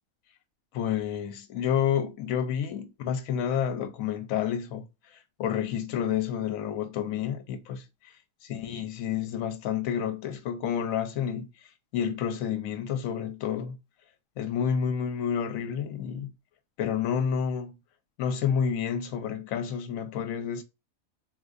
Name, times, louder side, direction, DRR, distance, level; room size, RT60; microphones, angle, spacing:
voice 1, 0.7-4.9 5.4-8.1 8.4-11.5 11.9-13.8 14.4-16.3 16.8-17.8 18.2-20.6, left 8 dB, 75° left, 1.0 m, -29 dB
3.9 x 2.4 x 2.4 m
omnidirectional pair, 1.5 m